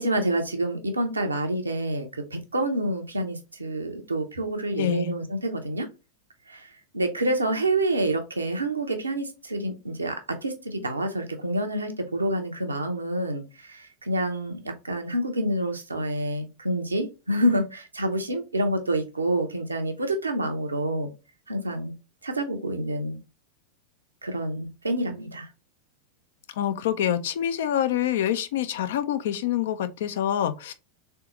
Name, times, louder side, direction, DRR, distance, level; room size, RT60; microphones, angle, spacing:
voice 1, 0.0-5.9 6.5-21.1 21.5-21.9 22.2-23.2 24.2-25.5, right 1 dB, 80° right, 0.8 m, -28 dB
voice 2, 4.7-5.1 26.6-30.7, left 10 dB, 55° left, 0.5 m, -26 dB
3.7 x 3.4 x 3.0 m
figure-of-eight pair, 90°, 0 cm